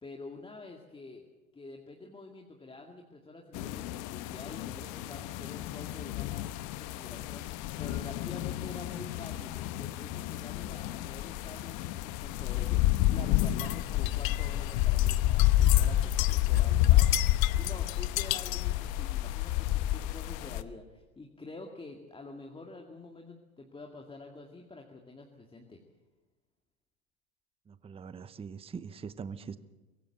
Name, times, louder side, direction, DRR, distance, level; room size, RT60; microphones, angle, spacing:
voice 1, 0.0-1.3 1.5-25.8, left 3 dB, 10° left, 1 dB, 2.1 m, -47 dB
sound 1, 3.5-20.6, left 14 dB, 45° left, 1.1 m, -29 dB
sound 2, 13.4-18.7, left 15 dB, 70° left, 0.9 m, -35 dB
voice 2, 27.7-29.6, right 6 dB, 15° right, 14 dB, 0.8 m, -42 dB
23.5 x 16.5 x 7.9 m, 1.2 s
hypercardioid pair, 105°, 42 cm